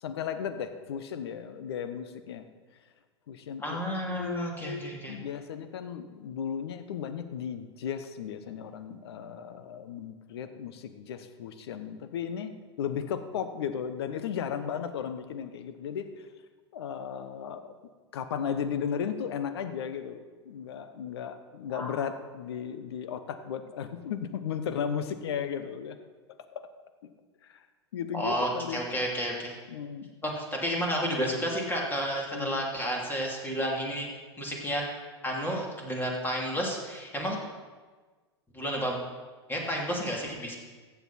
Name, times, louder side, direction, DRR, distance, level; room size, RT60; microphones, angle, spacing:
voice 1, 0.0-2.5 3.3-3.8 4.1-16.3 16.7-17.7 18.1-26.0 26.5-26.7 27.5-27.6 27.9-28.8 29.7-30.1 32.3-32.6, left 7 dB, 65° left, 10 dB, 1.0 m, -35 dB
voice 2, 3.6-5.1 21.7-22.0 28.1-29.5 30.2-34.1 34.4-34.8 35.2-37.4 38.5-39.0 39.5-40.5, equal, 15° left, -1 dB, 2.9 m, -31 dB
15.0 x 8.3 x 4.2 m, 1.4 s
figure-of-eight pair, 90°, 14 cm